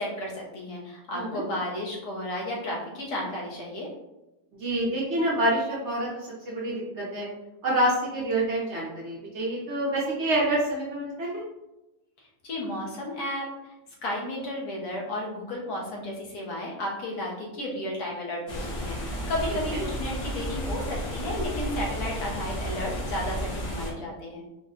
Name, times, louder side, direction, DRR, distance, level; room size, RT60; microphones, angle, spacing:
voice 1, 0.0-3.9 12.4-13.7 14.0-24.4, left 1 dB, 70° left, -2 dB, 1.4 m, -33 dB
voice 2, 1.1-1.4 4.6-7.3 7.6-11.4 19.7-19.8, right 1 dB, 55° right, -4 dB, 0.9 m, -27 dB
sound 1, 18.5-23.9, equal, 55° left, 1.2 m, -32 dB
4.0 x 2.2 x 3.6 m, 0.96 s
omnidirectional pair, 1.7 m